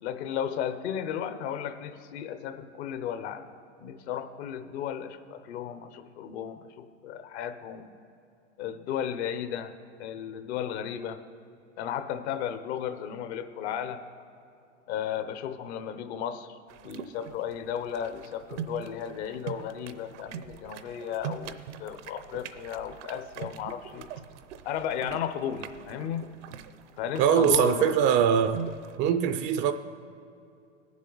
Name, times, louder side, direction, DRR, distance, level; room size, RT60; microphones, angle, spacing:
voice 1, 0.0-3.5 3.8-7.9 8.6-9.7 10.0-11.2 11.8-14.0 14.9-16.5 16.8-24.1 24.6-26.2 27.0-28.0, left 9 dB, 60° left, 1.0 m, -34 dB
sound 1, 16.7-29.0, right 8 dB, 70° right, 0.7 m, -42 dB
voice 2, 27.2-28.6 29.0-29.7, right 8 dB, 30° right, 0.4 m, -22 dB
19.5 x 7.4 x 4.0 m
hypercardioid pair, 115°, 37 cm